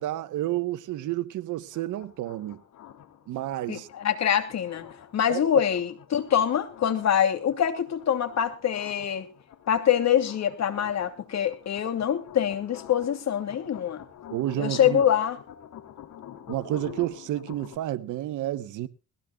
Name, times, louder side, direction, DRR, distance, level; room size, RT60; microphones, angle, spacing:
voice 1, 0.0-2.6 3.3-3.9 5.3-5.6 14.3-15.0 16.5-18.9, right 14 dB, 80° right, 1.1 m, -30 dB
sound 1, 1.7-17.8, left 10 dB, 75° left, 2.9 m, -47 dB
voice 2, 3.7-4.9 5.1-9.3 9.7-14.0 14.6-15.4, left 9 dB, 60° left, 2.8 m, -25 dB
20.5 x 16.0 x 2.3 m
cardioid pair, 90°, 30 cm